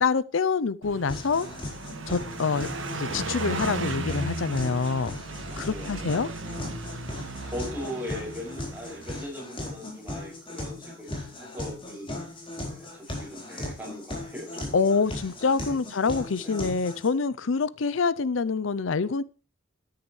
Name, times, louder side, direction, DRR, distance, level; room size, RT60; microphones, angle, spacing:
voice 1, 0.0-1.5 2.1-2.7 2.9-5.2 5.6-6.3 14.7-19.2, left 4 dB, 85° left, 19 dB, 0.6 m, -26 dB
Car passing by, 0.8-9.3, right 2 dB, 85° right, 1.8 m, -36 dB
sound 1, 1.1-17.1, left 1 dB, 25° left, 4.3 m, -38 dB
voice 2, 5.4-6.3 7.4-12.4 12.7-14.8 15.7-15.8 16.4-16.6, left 1 dB, 10° right, -3 dB, 7.1 m, -40 dB
13.0 x 10.5 x 3.2 m, 0.34 s
head